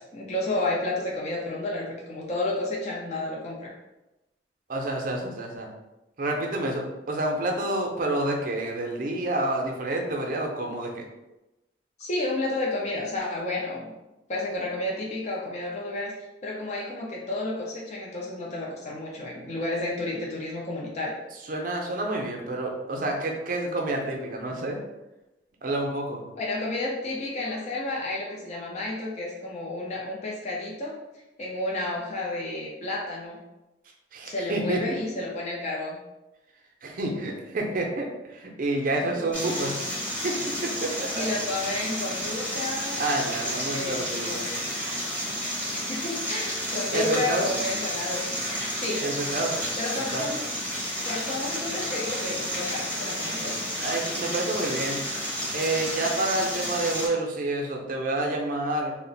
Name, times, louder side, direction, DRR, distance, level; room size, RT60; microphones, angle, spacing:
voice 1, 0.0-3.7 12.0-14.0 14.3-16.1 16.4-21.1 26.3-31.0 31.4-33.4 34.2-36.0 41.1-43.0 43.4-44.5 45.7-48.4 48.8-49.0 49.8-50.4 51.1-53.5, left 2 dB, 40° left, -3 dB, 0.5 m, -31 dB
voice 2, 4.7-5.7 6.2-11.0 21.5-24.8 25.6-26.2 34.1-35.0 36.8-39.8 40.2-41.3 43.0-44.6 46.9-47.6 49.0-49.7 50.1-50.4 53.8-55.0 55.5-58.9, right 2 dB, 50° right, 1 dB, 0.5 m, -29 dB
sound 1, 39.3-57.1, equal, 10° left, 0.7 m, -31 dB
2.4 x 2.1 x 3.8 m, 0.99 s
head